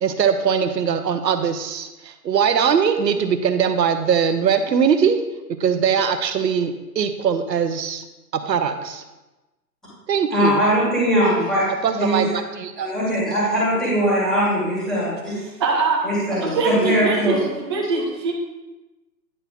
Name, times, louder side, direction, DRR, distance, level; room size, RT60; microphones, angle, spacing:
voice 1, 0.0-5.2 5.6-8.0 8.3-9.0 10.1-10.6 11.8-12.9, right 7 dB, 80° right, 8 dB, 0.9 m, -21 dB
voice 2, 10.3-11.7 11.9-12.3 12.8-15.3 16.0-17.4 17.8-17.9, equal, ahead, -10 dB, 2.1 m, -21 dB
voice 3, 15.6-16.0 16.4-18.3, right 4 dB, 15° right, -3 dB, 0.5 m, -22 dB
9.7 x 4.6 x 3.6 m, 1.1 s
hypercardioid pair, 150°, 50 cm